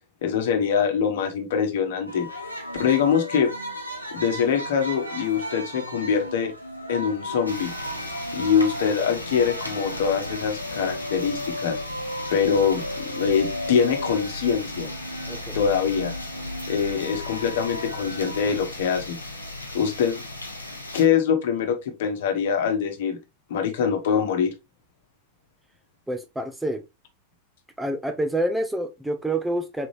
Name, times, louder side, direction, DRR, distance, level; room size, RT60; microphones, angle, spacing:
voice 1, 0.2-2.3 2.8-3.5 4.1-6.5 6.9-7.7 8.3-11.8 12.3-14.9 15.5-16.1 16.7-19.2 19.7-20.2 20.9-23.2 23.5-24.5, left 7 dB, 55° left, 1.2 m, -23 dB
sound 1, 2.1-18.5, equal, 90° right, 1.2 m, -35 dB
sound 2, 7.5-21.1, left 2 dB, 85° left, 1.1 m, -36 dB
voice 2, 15.3-15.6 26.1-26.8 27.8-29.9, right 1 dB, 5° right, 0.6 m, -27 dB
4.3 x 3.9 x 3.2 m
figure-of-eight pair, 90°, 0 cm